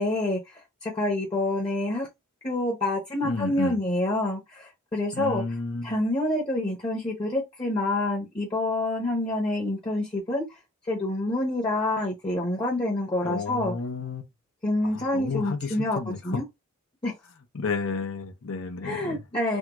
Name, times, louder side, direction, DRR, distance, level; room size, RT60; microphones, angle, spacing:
voice 1, 0.0-2.1 2.4-5.4 5.8-10.6 10.9-13.7 14.6-16.0 16.2-16.4 17.0-17.1 18.8-19.6, left 1 dB, 25° left, 0.7 m, -27 dB
voice 2, 3.2-3.8 5.1-5.9 13.2-14.2 14.9-16.4 17.5-19.2, left 4 dB, 80° left, 0.7 m, -31 dB
3.5 x 2.2 x 2.9 m
head